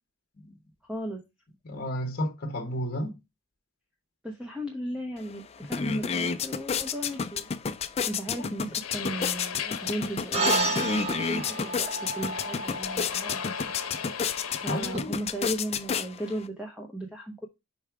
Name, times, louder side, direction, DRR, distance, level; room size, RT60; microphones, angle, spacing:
voice 1, 0.8-1.2 4.2-7.5 8.1-13.4 14.6-17.5, right 1 dB, 5° right, 0.8 m, -36 dB
voice 2, 1.6-3.1 8.4-8.5 14.6-15.2, equal, 45° left, 1.1 m, -32 dB
sound 1, 5.2-5.3 5.6-16.5, left 6 dB, 30° left, 0.3 m, -31 dB
sound 2, 8.8-14.9, left 8 dB, 85° left, 0.7 m, -38 dB
sound 3, 10.3-15.0, right 2 dB, 30° right, 1.0 m, -32 dB
5.4 x 4.6 x 4.6 m
head